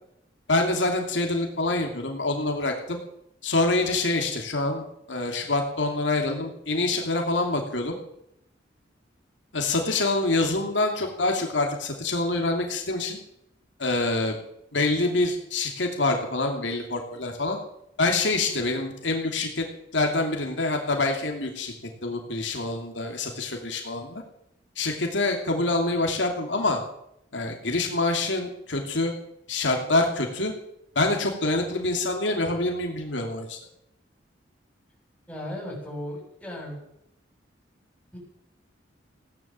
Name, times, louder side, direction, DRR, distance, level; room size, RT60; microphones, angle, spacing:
voice 1, 0.5-3.0 3.4-8.0 9.5-13.2 13.8-14.4 14.7-17.6 18.0-19.7 19.9-21.7 22.0-24.2 24.8-26.8 27.3-29.1 29.5-30.5 30.9-33.6, left 2 dB, 85° left, 2 dB, 2.7 m, -26 dB
voice 2, 35.3-36.9 38.1-38.2, left 1 dB, 10° left, -3 dB, 7.2 m, -36 dB
17.0 x 10.5 x 7.6 m, 0.75 s
head